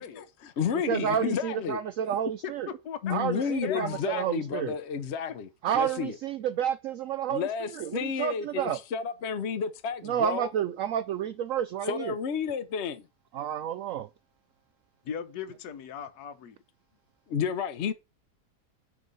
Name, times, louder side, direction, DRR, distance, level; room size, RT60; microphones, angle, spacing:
voice 1, 0.1-1.8 3.0-5.5 5.7-6.2 7.3-10.5 11.8-13.0 17.3-17.9, left 7 dB, 55° left, 0.8 m, -31 dB
voice 2, 0.9-2.7 3.1-4.7 5.6-7.5 7.7-8.8 10.0-12.2 13.3-14.1, right 9 dB, 70° right, 0.8 m, -30 dB
voice 3, 2.4-4.0 15.0-16.6, left 8 dB, 70° left, 1.4 m, -39 dB
9.9 x 3.5 x 5.3 m
omnidirectional pair, 1.7 m